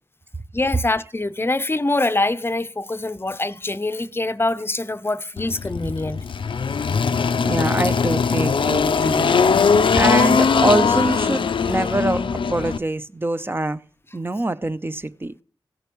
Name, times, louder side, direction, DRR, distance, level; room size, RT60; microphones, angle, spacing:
voice 1, 0.5-6.2 7.0-7.5, left 2 dB, 25° left, 0.6 m, -24 dB
Engine, 5.4-12.8, left 5 dB, 70° left, 0.5 m, -20 dB
voice 2, 7.4-9.3 9.9-13.8 14.1-15.3, right 2 dB, 25° right, 0.6 m, -24 dB
16.0 x 6.8 x 3.1 m
cardioid pair, 40°, 9 cm